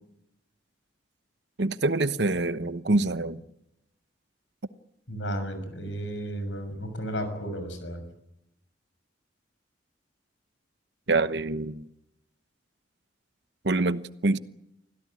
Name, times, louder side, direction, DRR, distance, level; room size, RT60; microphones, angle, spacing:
voice 1, 1.6-3.4 11.1-11.8 13.6-14.4, right 2 dB, 65° right, 1.0 m, -25 dB
voice 2, 5.1-8.0, equal, 85° left, 6.6 m, -33 dB
25.5 x 16.5 x 9.8 m
head